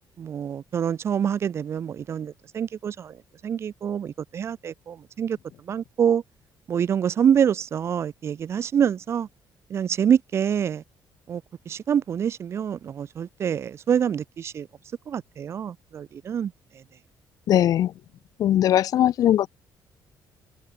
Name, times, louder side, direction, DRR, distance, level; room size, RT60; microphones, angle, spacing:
voice 1, 0.2-3.2 3.4-5.4 5.7-6.2 6.7-9.3 9.7-10.8 11.3-11.4 11.7-14.7 15.1-16.5, right 8 dB, 35° right, 1.1 m, -26 dB
voice 2, 17.5-17.9 18.4-19.5, left 11 dB, 55° left, 2.6 m, -20 dB
cardioid pair, 175°, 7 cm